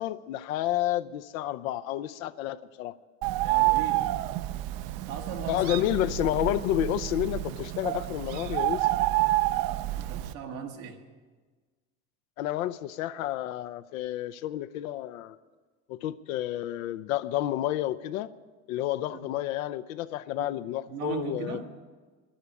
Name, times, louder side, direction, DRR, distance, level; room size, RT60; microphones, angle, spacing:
voice 1, 0.0-2.9 5.5-8.9 12.4-15.4 15.9-18.3 18.7-21.6, left 13 dB, 80° left, 0.7 m, -30 dB
Bird, 3.2-10.3, right 17 dB, 60° right, 0.6 m, -28 dB
voice 2, 3.4-4.1 5.1-5.7 10.1-11.0 19.1-19.3 20.4-20.6 20.9-21.7, right 7 dB, 85° right, 1.6 m, -38 dB
11.0 x 10.5 x 9.5 m
hypercardioid pair, 75°, 40 cm